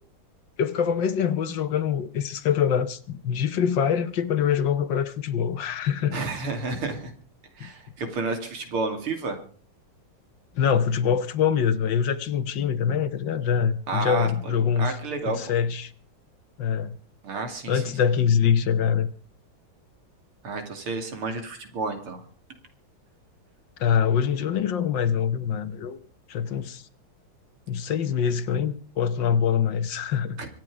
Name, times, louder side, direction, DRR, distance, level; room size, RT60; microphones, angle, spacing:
voice 1, 0.6-6.2 7.6-7.7 10.5-15.0 15.2-15.9 16.6-17.0 17.7-19.1 23.8-26.0 26.3-26.8 27.7-30.4, left 7 dB, 65° left, 1.6 m, -24 dB
voice 2, 6.1-7.1 7.6-9.4 13.9-14.5 14.8-15.4 17.2-18.0 20.4-22.2 30.4-30.5, right 3 dB, 85° right, 3.5 m, -31 dB
25.0 x 9.4 x 4.9 m
omnidirectional pair, 2.3 m